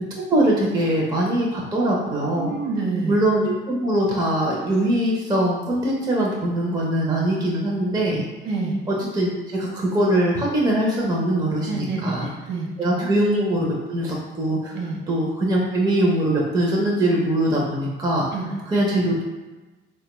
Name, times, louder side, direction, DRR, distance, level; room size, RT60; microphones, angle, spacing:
voice 1, 0.3-2.5 3.1-8.2 8.9-12.3 12.8-14.8 15.1-18.3 18.7-19.2, right 1 dB, 20° right, -3 dB, 0.6 m, -22 dB
voice 2, 2.3-3.2 8.4-8.8 11.7-12.7 12.9-13.1 14.7-15.0 18.3-18.6, right 3 dB, 85° right, -1 dB, 0.6 m, -27 dB
3.3 x 2.2 x 2.9 m, 1.2 s
cardioid pair, 90°, 20 cm